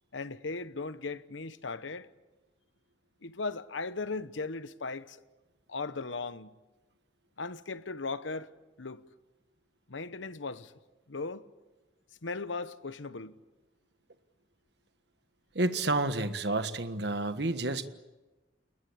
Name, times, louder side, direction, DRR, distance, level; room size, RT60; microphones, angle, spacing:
voice 1, 0.1-2.1 3.2-5.2 5.7-6.5 7.4-8.5 8.8-9.0 9.9-10.7 11.1-11.5 12.2-13.4, left 3 dB, 80° left, 1.1 m, -37 dB
voice 2, 15.5-17.9, right 2 dB, 60° right, 1.5 m, -30 dB
29.5 x 20.5 x 8.7 m
head